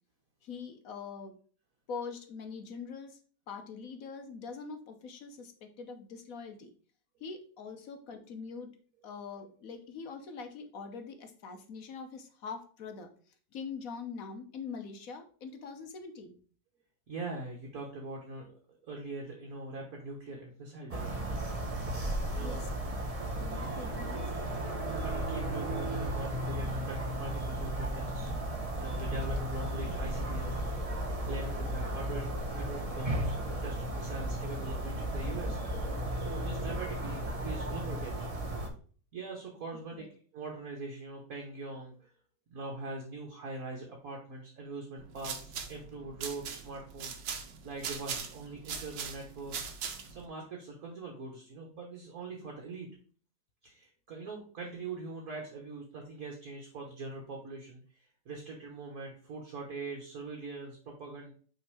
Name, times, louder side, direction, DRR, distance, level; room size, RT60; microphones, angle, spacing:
voice 1, 0.4-1.4 1.9-3.2 3.5-6.7 7.2-8.8 9.0-16.4 22.4-22.7 23.4-24.3 40.0-40.1, left 5 dB, 60° left, 6 dB, 1.1 m, -43 dB
voice 2, 17.1-18.5 18.8-21.3 22.3-22.6 24.5-24.6 25.0-28.3 28.8-30.7 31.3-35.6 36.2-38.3 39.1-40.1 40.3-42.1 42.5-47.1 47.6-49.6 50.1-52.9 53.6-61.3, right 3 dB, 55° right, -1 dB, 1.5 m, -42 dB
sound 1, 20.9-38.7, right 1 dB, 40° right, 0.5 m, -34 dB
sound 2, 45.0-50.3, right 6 dB, 80° right, 1.5 m, -40 dB
5.9 x 3.6 x 4.7 m, 0.43 s
omnidirectional pair, 1.9 m